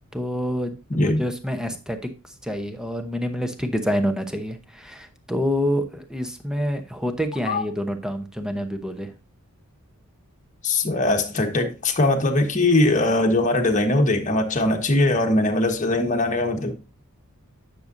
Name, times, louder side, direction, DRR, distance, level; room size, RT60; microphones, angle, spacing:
voice 1, 0.1-2.1 2.4-9.1, equal, 5° right, 0.8 m, -27 dB
voice 2, 0.9-1.2 7.5-7.6 10.6-16.7, left 2 dB, 35° left, 1.3 m, -21 dB
10.0 x 6.6 x 2.6 m
head